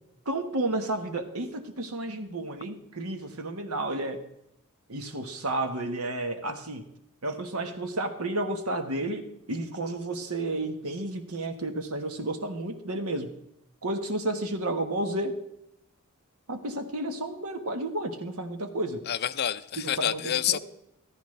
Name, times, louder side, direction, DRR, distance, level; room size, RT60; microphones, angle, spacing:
voice 1, 0.2-4.2 4.9-6.8 7.2-13.3 13.8-15.4 16.5-19.0 19.8-20.6, right 2 dB, 80° right, 7 dB, 1.5 m, -32 dB
voice 2, 19.1-20.6, left 10 dB, 50° left, 13 dB, 0.5 m, -28 dB
14.5 x 13.5 x 3.3 m, 0.79 s
head